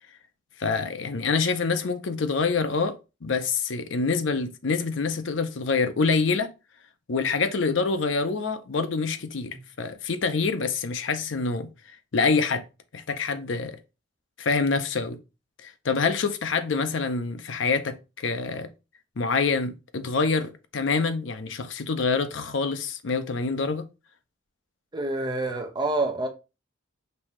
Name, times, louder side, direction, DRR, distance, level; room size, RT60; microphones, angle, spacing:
voice 1, 0.6-6.5 7.1-11.7 12.1-12.6 12.9-13.8 14.4-15.2 15.6-18.7 19.2-23.8, left 4 dB, 60° left, 0.6 m, -26 dB
voice 2, 24.9-26.3, right 2 dB, 20° right, 0.7 m, -27 dB
5.4 x 2.7 x 3.1 m
head